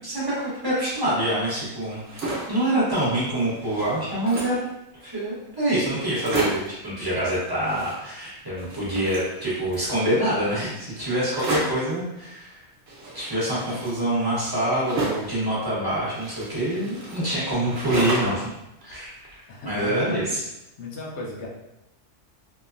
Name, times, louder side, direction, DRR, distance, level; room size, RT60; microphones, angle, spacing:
voice 1, 0.0-2.0 2.5-4.6 5.0-12.6 13.1-18.5 18.8-20.4, right 1 dB, 20° right, -9 dB, 1.0 m, -26 dB
sound 1, 1.9-2.6 3.1-3.2 3.4-4.7 5.3-5.4 5.6-5.7 6.0-6.8 7.5-8.3 8.6-9.9 11.3-11.9 12.9-15.4 16.1-18.5 18.8-19.7, right 2 dB, 65° right, 0.9 m, -32 dB
voice 2, 13.5-13.8 19.1-20.2 20.8-21.5, left 2 dB, 75° left, -2 dB, 0.9 m, -36 dB
3.0 x 2.1 x 2.4 m, 0.89 s
omnidirectional pair, 1.2 m